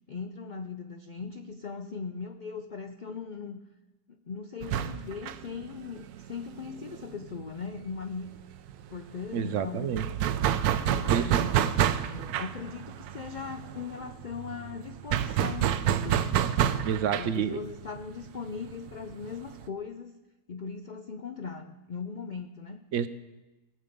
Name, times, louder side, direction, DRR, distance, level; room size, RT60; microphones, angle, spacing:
voice 1, 0.1-3.6 4.3-8.3 8.9-10.0 10.9-11.7 12.0-16.3 17.2-20.1 20.5-22.8, left 5 dB, 90° left, 7 dB, 0.4 m, -39 dB
sound 1, 4.6-8.0 8.3-8.4 8.7-19.7, right 10 dB, 85° right, 1.1 m, -29 dB
voice 2, 9.3-10.0 11.1-11.3 16.8-17.6 22.9-23.1, right 8 dB, 65° right, 12 dB, 0.8 m, -29 dB
18.5 x 7.4 x 5.2 m, 1.1 s
omnidirectional pair, 1.6 m